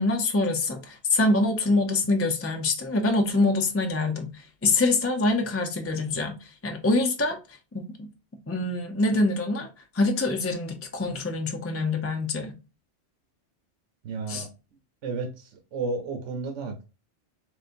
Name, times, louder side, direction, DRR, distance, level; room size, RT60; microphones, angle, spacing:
voice 1, 0.0-4.3 4.6-7.4 7.7-8.1 8.5-9.7 9.9-12.5 14.3-14.5, left 2 dB, 20° left, 0.4 m, -25 dB
voice 2, 14.0-14.5 15.0-16.8, right 3 dB, 75° right, 1.1 m, -32 dB
3.7 x 3.7 x 2.6 m
omnidirectional pair, 1.2 m